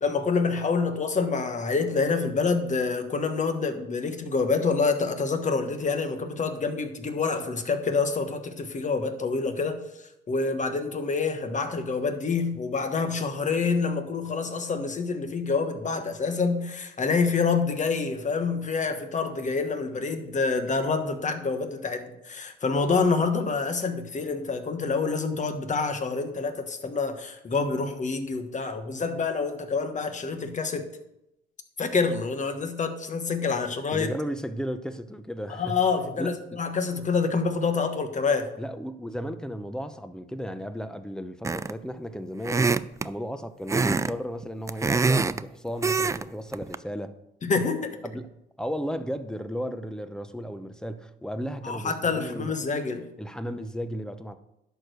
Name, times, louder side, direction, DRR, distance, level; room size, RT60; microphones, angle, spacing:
voice 1, 0.0-30.9 31.8-34.1 35.5-38.5 47.4-48.0 51.6-53.1, left 4 dB, 40° left, 1.3 m, -27 dB
voice 2, 33.9-35.8 36.2-36.4 38.6-42.7 43.0-47.1 48.0-48.3 48.6-52.5 53.2-54.4, equal, 5° left, 0.7 m, -34 dB
sound 1, 41.4-41.9 42.4-43.1 43.7-44.1 44.4-45.4 45.8-46.2 46.5-46.8, right 4 dB, 15° right, 0.3 m, -24 dB
11.0 x 4.6 x 6.7 m
cardioid pair, 90°, 20 cm